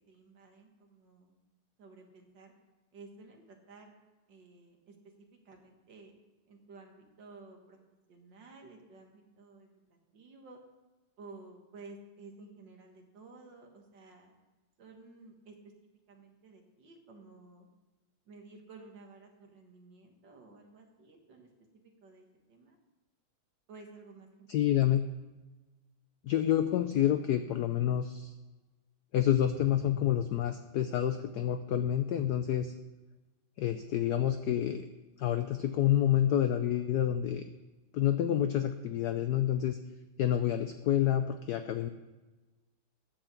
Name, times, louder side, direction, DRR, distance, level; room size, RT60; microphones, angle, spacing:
voice 1, 0.1-1.3 1.8-2.5 2.9-4.0 4.3-5.0 5.5-6.1 6.5-7.8 8.1-10.6 11.2-14.3 14.8-15.6 16.1-17.7 18.3-21.5 21.8-22.8 23.7-24.5, right 3 dB, 60° right, 2 dB, 2.1 m, -53 dB
voice 2, 24.5-25.0 26.2-28.3 29.1-32.7 33.6-34.8 35.2-37.4 37.9-39.8 40.2-41.9, left 11 dB, 85° left, 9 dB, 0.8 m, -28 dB
10.0 x 7.9 x 7.2 m, 1.2 s
omnidirectional pair, 2.3 m